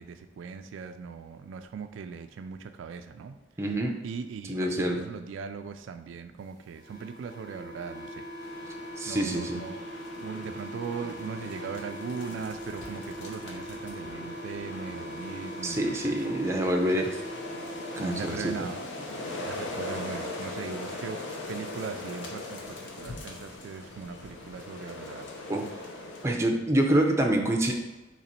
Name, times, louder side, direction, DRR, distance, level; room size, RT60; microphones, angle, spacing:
voice 1, 0.0-3.4 4.0-8.3 9.1-9.9 10.2-16.2 16.8-17.1 18.0-18.9 19.4-21.2 21.5-25.3, right 6 dB, 85° right, 9 dB, 0.3 m, -39 dB
voice 2, 3.6-4.0 4.5-5.1 9.0-9.6 15.6-17.1 18.0-18.5 25.5-25.7 26.2-27.7, right 1 dB, 15° right, 2 dB, 0.5 m, -26 dB
sound 1, 6.7-18.8, equal, 5° left, 1.2 m, -41 dB
sound 2, 8.4-26.4, left 2 dB, 70° left, 0.7 m, -40 dB
sound 3, 10.1-15.3, left 1 dB, 85° left, 1.5 m, -51 dB
4.0 x 3.0 x 4.3 m, 1.1 s
head